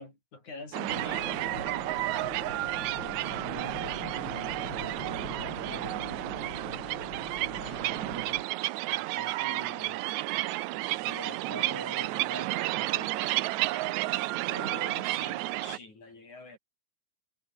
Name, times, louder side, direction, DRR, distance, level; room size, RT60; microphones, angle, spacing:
voice 1, 0.0-1.4 7.6-8.2 14.5-16.6, left 3 dB, 75° left, 9.4 m, -45 dB
sound 1, 0.7-15.8, right 17 dB, 80° right, 2.0 m, -32 dB
sound 2, 0.9-8.4, left 3 dB, 35° left, 6.5 m, -43 dB
voice 2, 3.4-6.2 8.8-10.1 11.0-13.2, equal, 5° right, 7.5 m, -45 dB
omnidirectional pair, 3.4 m